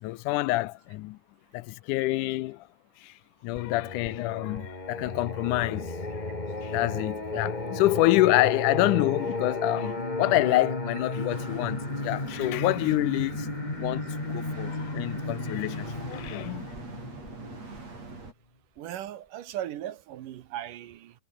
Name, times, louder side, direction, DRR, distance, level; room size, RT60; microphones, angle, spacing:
voice 1, 0.0-1.2 1.5-2.6 3.0-3.1 3.4-6.0 6.6-13.5 13.8-14.0 14.3-16.7, left 18 dB, 80° left, 1.9 m, -27 dB
Singing, 3.6-18.3, left 2 dB, 15° left, 2.5 m, -34 dB
sound 1, 11.3-18.3, right 3 dB, 50° right, 7.8 m, -42 dB
voice 2, 18.8-21.1, right 12 dB, 75° right, 2.8 m, -37 dB
omnidirectional pair, 4.0 m